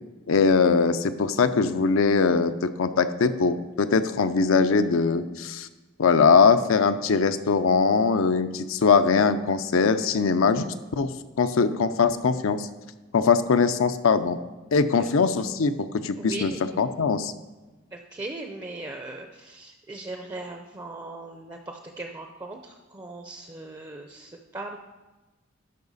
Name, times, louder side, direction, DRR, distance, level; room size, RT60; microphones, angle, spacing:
voice 1, 0.3-5.7 6.0-10.7 10.9-11.1 11.4-12.7 13.1-14.4 14.7-16.5 16.8-17.3, left 5 dB, 80° left, 11 dB, 0.5 m, -21 dB
voice 2, 16.2-16.7 17.9-24.8, right 2 dB, 20° right, 4 dB, 0.5 m, -38 dB
12.0 x 5.6 x 4.0 m, 1.1 s
head